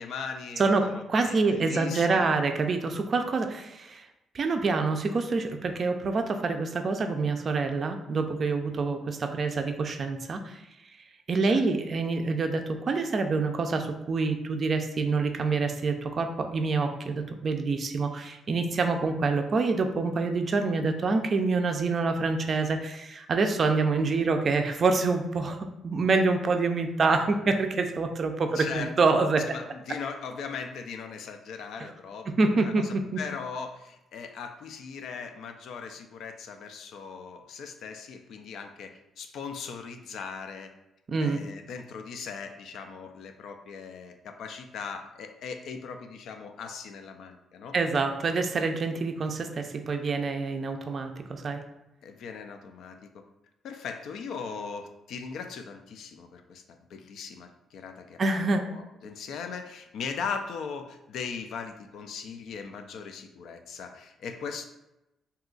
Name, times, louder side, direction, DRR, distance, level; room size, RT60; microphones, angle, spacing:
voice 1, 0.0-2.4 11.5-11.6 28.5-28.9 29.5-40.7 41.2-47.8 52.0-53.2 53.6-64.7, left 5 dB, 75° left, 6 dB, 0.3 m, -39 dB
voice 2, 0.6-4.1 4.3-10.6 11.3-29.6 32.3-33.2 41.1-41.4 47.7-51.6 58.2-58.7, right 3 dB, 45° right, 5 dB, 0.4 m, -26 dB
2.7 x 2.3 x 3.8 m, 0.92 s
cardioid pair, 90°, 0 cm